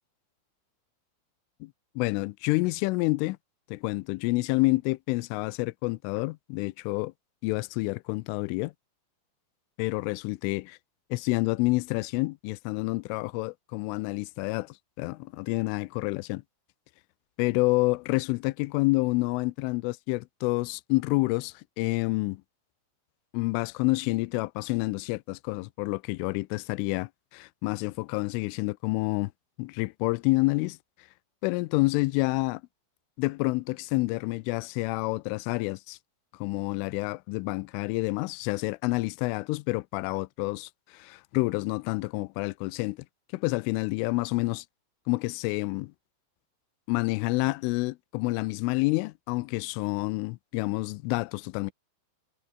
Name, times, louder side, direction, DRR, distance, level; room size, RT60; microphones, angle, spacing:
voice 1, 1.6-3.4 3.7-7.1 7.4-8.7 9.8-10.8 11.1-16.4 17.4-22.4 23.3-29.3 29.6-30.8 31.4-32.6 33.2-36.0 36.4-43.0 43.3-44.7 45.1-45.9 46.9-51.7, left 23 dB, 85° left, 3.1 m, -28 dB
omnidirectional pair, 5.9 m